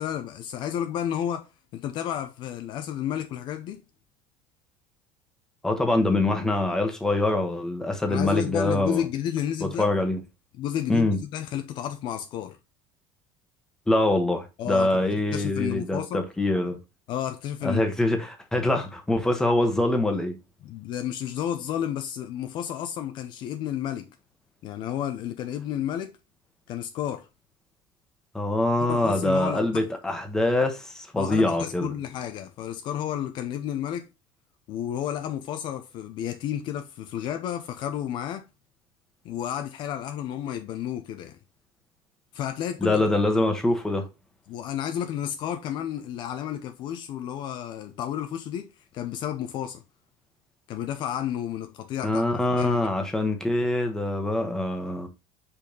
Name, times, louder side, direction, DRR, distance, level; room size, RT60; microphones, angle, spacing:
voice 1, 0.0-3.8 8.1-9.9 10.6-12.6 14.6-16.2 17.1-17.9 20.6-24.1 24.6-26.2 26.7-27.3 28.8-29.8 31.2-34.1 34.7-38.5 39.2-41.4 42.3-43.0 44.5-49.8 50.7-52.2 52.6-52.8, left 10 dB, 45° left, 0.6 m, -31 dB
voice 2, 5.6-9.0 9.6-10.2 10.9-11.2 13.9-16.8 17.6-20.3 28.3-31.9 42.8-44.1 52.0-55.1, left 2 dB, 5° left, 1.1 m, -24 dB
5.3 x 4.2 x 5.1 m
cardioid pair, 160°, 11 cm